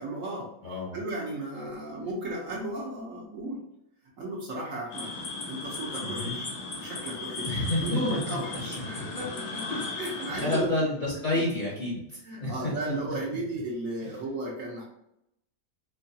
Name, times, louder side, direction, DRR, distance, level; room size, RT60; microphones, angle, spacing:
voice 1, 0.0-0.5 0.9-3.6 4.2-5.1 5.5-6.5 6.8-7.5 7.8-9.7 10.0-10.9 12.2-14.8, right 1 dB, 60° right, -2 dB, 1.0 m, -34 dB
voice 2, 0.6-1.0 6.0-6.4 7.4-8.2 8.9-9.0 9.7-10.0 10.3-12.9 14.0-14.1, left 1 dB, 35° left, -5 dB, 0.9 m, -30 dB
sound 1, 4.9-10.6, left 3 dB, 70° left, 1.4 m, -36 dB
4.5 x 2.3 x 2.7 m, 0.79 s
omnidirectional pair, 1.8 m